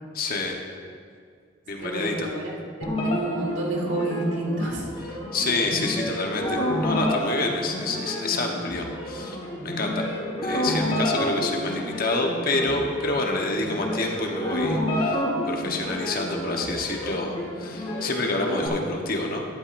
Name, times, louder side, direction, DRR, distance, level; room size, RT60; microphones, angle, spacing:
voice 1, 0.1-0.6 1.7-2.3 5.1-9.4 9.6-10.1 10.4-19.4, left 2 dB, 50° left, 1 dB, 1.1 m, -28 dB
voice 2, 1.8-4.9, right 2 dB, 80° right, -2 dB, 2.2 m, -29 dB
sound 1, 2.8-18.7, left 1 dB, 35° left, 2.4 m, -29 dB
12.0 x 11.5 x 2.6 m, 2.1 s
head